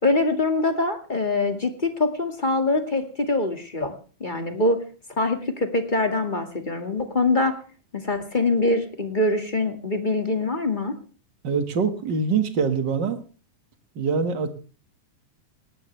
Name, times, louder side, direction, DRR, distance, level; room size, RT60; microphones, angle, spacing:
voice 1, 0.0-3.9 4.2-4.8 5.2-7.6 7.9-10.9, left 2 dB, 20° left, 6 dB, 1.7 m, -24 dB
voice 2, 11.4-13.2 14.0-14.5, right 5 dB, 40° right, 8 dB, 2.1 m, -24 dB
18.5 x 18.5 x 3.4 m, 0.38 s
omnidirectional pair, 3.7 m